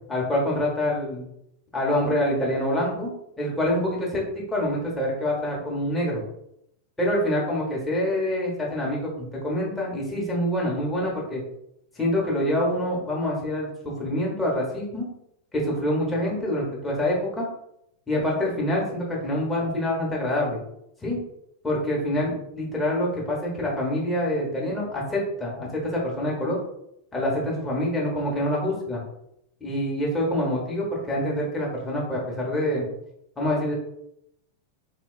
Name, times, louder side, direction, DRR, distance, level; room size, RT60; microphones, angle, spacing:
voice 1, 0.1-1.3 1.7-3.1 3.4-6.2 7.0-11.4 12.0-15.1 15.5-17.5 18.1-20.6 21.0-21.2 21.6-26.6 27.1-29.0 29.6-32.9 33.4-33.7, left 1 dB, 10° left, -4 dB, 0.9 m, -26 dB
2.9 x 2.2 x 2.3 m, 0.79 s
figure-of-eight pair, 90°, 0 cm